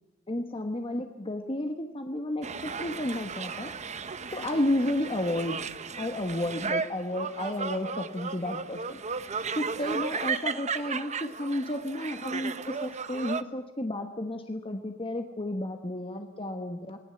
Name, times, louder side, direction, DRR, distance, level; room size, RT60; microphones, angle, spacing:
voice 1, 0.3-3.7 4.3-5.6 6.0-9.0 9.5-17.0, left 1 dB, 25° left, 5 dB, 1.4 m, -32 dB
sound 1, 2.4-13.4, right 5 dB, 35° right, 0.9 m, -35 dB
27.0 x 19.5 x 7.9 m, 1.0 s
head